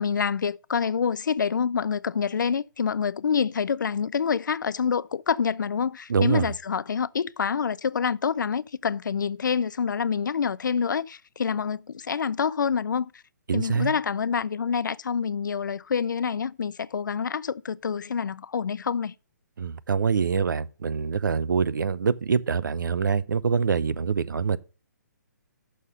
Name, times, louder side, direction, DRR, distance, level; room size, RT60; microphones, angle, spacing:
voice 1, 0.0-13.1 13.5-19.1, left 6 dB, 85° left, 0.4 m, -27 dB
voice 2, 6.1-6.5 13.5-13.9 19.6-24.6, right 6 dB, 85° right, 0.6 m, -25 dB
6.4 x 5.6 x 6.5 m
hypercardioid pair, 160°, 10 cm